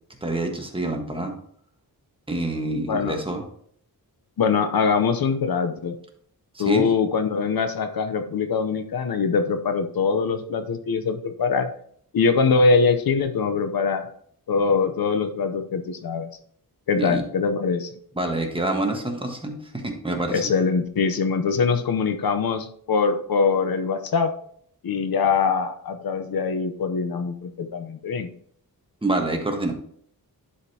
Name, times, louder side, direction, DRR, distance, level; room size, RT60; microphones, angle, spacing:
voice 1, 0.2-1.3 2.3-3.4 6.5-6.9 17.0-17.2 18.1-20.5 29.0-29.7, right 2 dB, 15° right, 2 dB, 1.4 m, -27 dB
voice 2, 4.4-6.0 6.6-11.7 12.1-14.1 14.5-16.3 16.9-17.9 20.3-24.3 24.8-28.3, left 5 dB, 70° left, 8 dB, 0.8 m, -23 dB
11.5 x 5.1 x 2.8 m, 0.63 s
wide cardioid pair, 125°, 37 cm